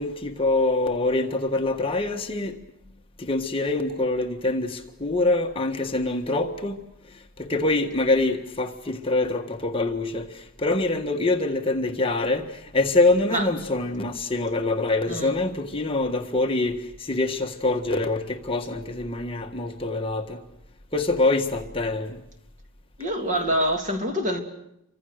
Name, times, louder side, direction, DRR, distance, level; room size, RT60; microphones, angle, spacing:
voice 1, 0.0-2.6 3.2-6.8 7.4-20.4 20.9-22.2, left 2 dB, 25° left, 1.5 m, -25 dB
voice 2, 23.0-24.4, equal, 35° right, 3.0 m, -25 dB
28.5 x 25.0 x 6.6 m
head